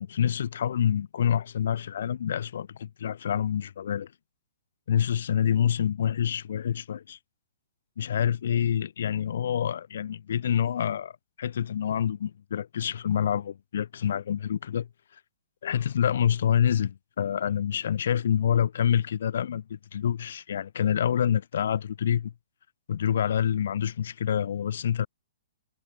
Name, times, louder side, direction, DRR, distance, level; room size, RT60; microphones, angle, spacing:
voice 1, 0.0-4.1 4.9-7.2 8.0-11.1 11.4-14.9 15.6-22.3 22.9-25.1, left 9 dB, 65° left, 1.6 m, -27 dB
hypercardioid pair, 130°, 0 cm